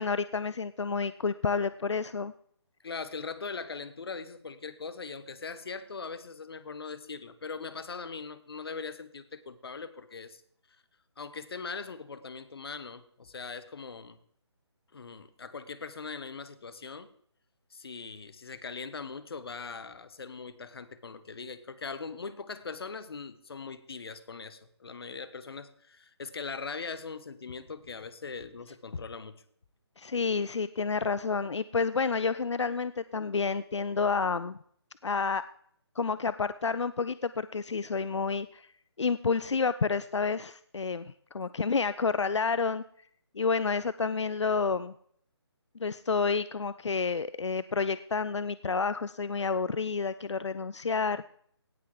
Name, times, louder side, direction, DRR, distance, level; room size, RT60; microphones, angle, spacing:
voice 1, 0.0-2.3 30.0-34.6 35.0-35.5 36.0-38.7 39.0-42.8 43.4-44.9 45.8-51.3, left 5 dB, 90° left, 14 dB, 0.5 m, -29 dB
voice 2, 2.8-10.4 11.2-14.2 14.9-17.1 17.7-29.4, left 5 dB, 60° left, 13 dB, 1.1 m, -40 dB
17.0 x 5.9 x 4.9 m, 0.62 s
figure-of-eight pair, 160°, 15 cm